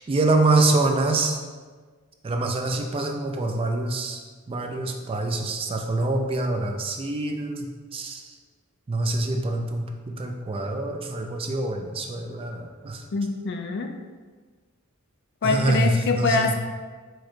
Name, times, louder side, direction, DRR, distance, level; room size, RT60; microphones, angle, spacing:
voice 1, 0.0-1.4 2.2-4.2 4.5-8.2 8.9-13.0 15.4-16.5, right 2 dB, 25° right, 3 dB, 0.3 m, -25 dB
voice 2, 13.1-13.9 15.4-16.5, left 4 dB, 55° left, 5 dB, 0.4 m, -24 dB
4.6 x 2.2 x 4.4 m, 1.4 s
head